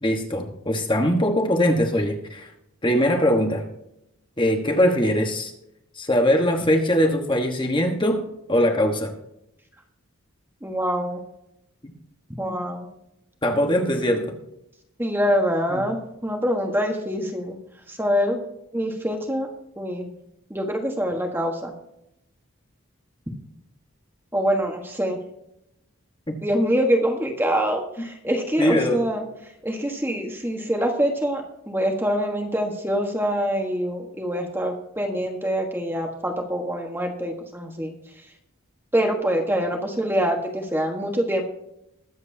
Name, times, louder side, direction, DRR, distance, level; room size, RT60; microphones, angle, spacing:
voice 1, 0.0-2.5 2.8-3.6 4.4-5.5 5.9-8.2 8.5-9.1 11.8-11.9 13.4-14.3 15.7-15.8 26.3-26.4 28.6-29.0, equal, 20° left, 3 dB, 1.3 m, -21 dB
voice 2, 10.6-11.2 12.4-12.9 15.0-17.6 17.9-18.4 18.7-19.5 19.8-20.1 20.5-21.7 24.3-25.2 26.4-37.9 38.9-41.4, equal, 10° right, 2 dB, 1.4 m, -25 dB
21.5 x 8.0 x 2.8 m, 0.83 s
head